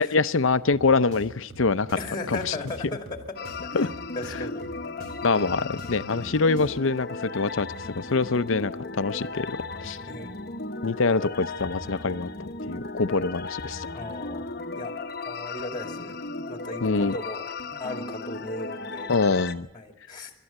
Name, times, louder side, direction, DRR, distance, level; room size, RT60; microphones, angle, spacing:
voice 1, 0.0-2.0 2.3-2.6 3.7-3.9 5.2-10.0 10.8-13.9 16.8-17.1 19.1-19.7, left 4 dB, 75° left, 0.7 m, -25 dB
sound 1, 0.7-6.9, right 1 dB, 45° right, 4.2 m, -46 dB
voice 2, 2.0-3.4 3.6-3.9 4.1-4.7 10.1-10.3 13.9-14.5 14.7-14.9 15.2-16.2 16.5-17.4 17.8-19.1 19.7-20.3, left 2 dB, 20° left, 2.3 m, -36 dB
sound 2, 3.3-19.5, left 3 dB, 50° left, 1.0 m, -36 dB
26.0 x 12.5 x 8.8 m
head